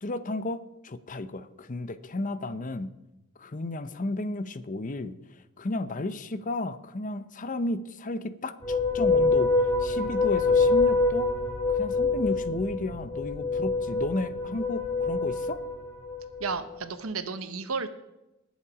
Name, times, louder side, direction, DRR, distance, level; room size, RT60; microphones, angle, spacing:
voice 1, 0.0-2.9 3.4-11.4 11.7-15.6, left 2 dB, 40° left, 13 dB, 0.7 m, -33 dB
sound 1, 8.6-16.7, left 3 dB, 20° left, 3.4 m, -26 dB
voice 2, 16.4-17.9, right 4 dB, 85° right, 11 dB, 1.1 m, -32 dB
20.0 x 7.3 x 4.9 m, 0.94 s
head